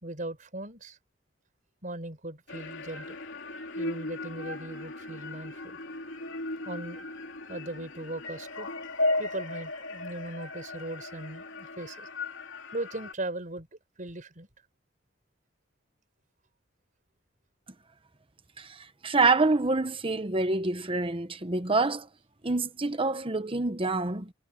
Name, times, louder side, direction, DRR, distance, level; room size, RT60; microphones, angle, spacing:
voice 1, 0.0-1.0 1.8-3.2 3.8-5.8 6.6-7.1 7.5-8.7 9.2-12.1 12.7-14.5, right 1 dB, 45° right, 5.1 m, -39 dB
sound 1, 2.5-13.1, left 2 dB, 85° left, 2.9 m, -36 dB
voice 2, 18.6-22.1 22.4-24.3, right 3 dB, 30° right, 1.2 m, -27 dB
head